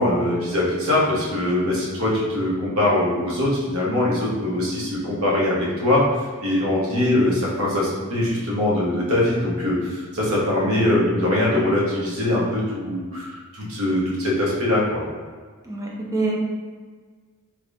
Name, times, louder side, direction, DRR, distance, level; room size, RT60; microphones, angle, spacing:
voice 1, 0.0-6.0 6.4-15.0, left 1 dB, 65° right, -5 dB, 1.0 m, -22 dB
voice 2, 15.6-16.3, right 3 dB, 15° right, -3 dB, 0.6 m, -25 dB
3.5 x 3.1 x 2.5 m, 1.5 s
head